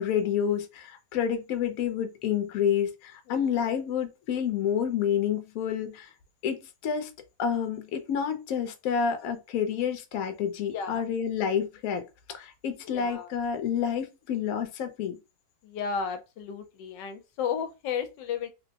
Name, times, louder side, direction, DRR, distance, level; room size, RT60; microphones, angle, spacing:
voice 1, 0.0-6.1 6.4-7.1 7.4-15.2, left 8 dB, 65° left, 1.0 m, -29 dB
voice 2, 10.7-11.0 12.8-13.3 15.6-18.5, left 6 dB, 80° left, 1.2 m, -33 dB
3.7 x 2.1 x 2.7 m
omnidirectional pair, 1.9 m